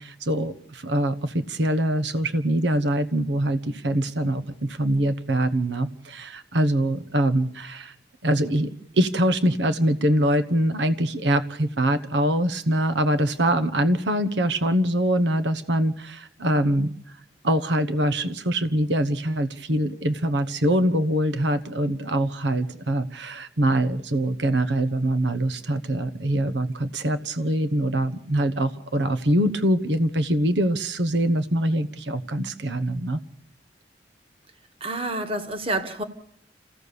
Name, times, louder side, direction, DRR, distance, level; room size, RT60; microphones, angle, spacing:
voice 1, 0.0-7.9 8.2-16.9 17.4-33.2, right 1 dB, 75° right, 10 dB, 1.1 m, -24 dB
voice 2, 34.8-36.0, right 2 dB, 30° right, 8 dB, 1.7 m, -28 dB
28.0 x 16.0 x 6.9 m, 0.71 s
head